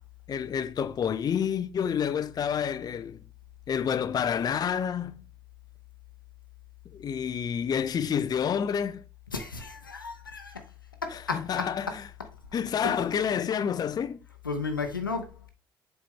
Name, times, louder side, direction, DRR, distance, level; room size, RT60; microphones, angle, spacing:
voice 1, 0.3-3.2 3.7-5.2 6.9-9.0 11.1-12.0 12.5-14.2, left 8 dB, 40° left, 0.5 m, -29 dB
voice 2, 9.3-10.6 11.0-11.7 12.8-12.9 14.4-15.5, left 4 dB, 90° left, 0.7 m, -33 dB
7.3 x 4.3 x 3.5 m
figure-of-eight pair, 45°, 11 cm